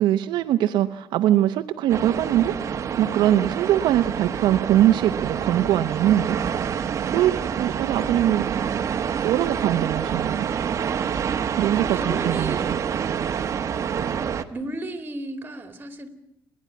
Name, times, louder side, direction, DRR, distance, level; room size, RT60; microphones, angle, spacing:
voice 1, 0.0-2.5 3.0-6.4 7.1-8.5 9.2-10.5 11.6-12.7, right 12 dB, 70° right, 7 dB, 0.9 m, -22 dB
sound 1, 1.9-14.4, right 7 dB, 40° right, 1.2 m, -27 dB
voice 2, 11.6-12.7 14.5-16.1, right 2 dB, 25° right, 9 dB, 2.5 m, -33 dB
29.0 x 10.5 x 9.6 m, 0.86 s
cardioid pair, 115°, 8 cm